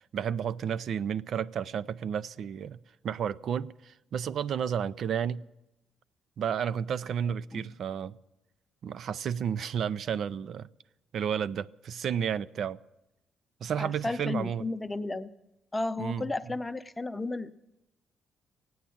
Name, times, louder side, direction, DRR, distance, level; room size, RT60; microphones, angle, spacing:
voice 1, 0.1-2.8 3.0-5.4 6.4-8.2 8.8-10.7 11.1-12.8 13.6-14.6 16.0-16.2, right 8 dB, 65° right, 0.4 m, -32 dB
voice 2, 13.8-15.3 15.7-17.6, left 2 dB, 15° left, 0.7 m, -33 dB
15.5 x 9.4 x 8.6 m
cardioid pair, 90°, 0 cm